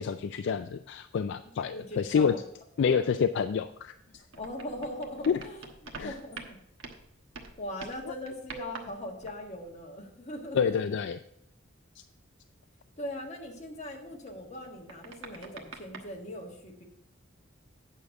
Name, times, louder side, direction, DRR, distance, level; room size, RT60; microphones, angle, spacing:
voice 1, 0.0-2.3 2.8-3.9 5.3-5.4 6.0-6.1 10.5-11.2, left 6 dB, 60° left, 10 dB, 0.3 m, -28 dB
voice 2, 1.4-2.4 2.9-3.0 4.4-6.6 7.6-10.7 13.0-16.8, left 1 dB, 35° left, 0 dB, 1.5 m, -40 dB
sound 1, 4.1-7.1 7.3-9.8 14.1-16.0, right 3 dB, 75° right, 1.1 m, -46 dB
9.0 x 6.6 x 4.8 m, 0.72 s
head